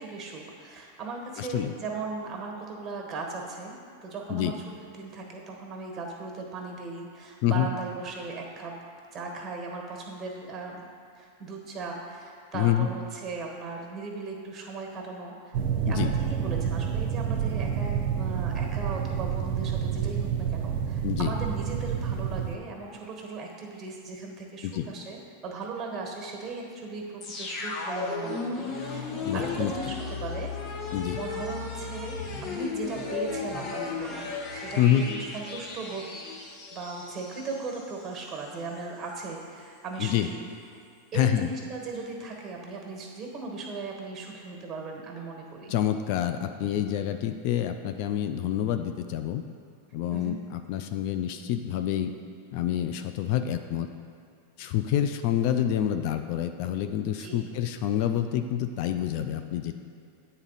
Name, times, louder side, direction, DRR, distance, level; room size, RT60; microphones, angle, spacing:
voice 1, 0.0-8.8 9.1-10.9 11.1-15.6 15.9-30.5 31.1-32.2 32.5-36.2 36.7-40.4 40.7-40.8 41.1-45.7 50.1-50.4 57.2-57.5, right 3 dB, 25° right, 1 dB, 1.3 m, -38 dB
voice 2, 1.4-1.7 4.3-4.5 7.4-7.7 12.5-12.9 15.9-16.1 21.0-21.3 24.6-24.9 29.2-29.7 30.9-31.2 34.8-35.0 40.0-40.3 41.1-41.5 45.7-49.4 49.9-52.1 52.5-53.9 54.6-59.7, left 11 dB, 55° left, 8 dB, 0.4 m, -27 dB
sound 1, 15.5-22.6, right 8 dB, 55° right, 0.6 m, -29 dB
sound 2, 27.2-38.0 38.3-38.4, left 4 dB, 35° left, 1.0 m, -35 dB
8.4 x 4.0 x 4.0 m, 2.5 s
hypercardioid pair, 100°, 0 cm